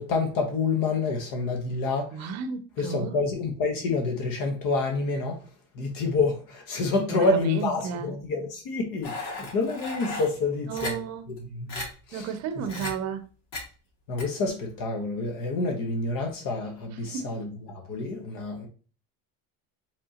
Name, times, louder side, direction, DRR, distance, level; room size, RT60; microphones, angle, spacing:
voice 1, 0.0-2.3 2.8-5.4 5.7-11.0 11.3-12.3 12.8-12.9 14.1-18.7, left 3 dB, 55° left, 1.1 m, -28 dB
voice 2, 2.1-3.2 7.1-8.1 10.7-11.3 12.1-13.2 17.0-17.4, right 6 dB, 40° right, 0.7 m, -32 dB
sound 1, 9.0-10.3 10.8-10.9 11.4-11.5 11.7-11.9 12.7-12.9 13.5-13.6 14.2-14.3, left 2 dB, 80° left, 2.2 m, -35 dB
5.2 x 3.6 x 2.9 m
cardioid pair, 150°, 39 cm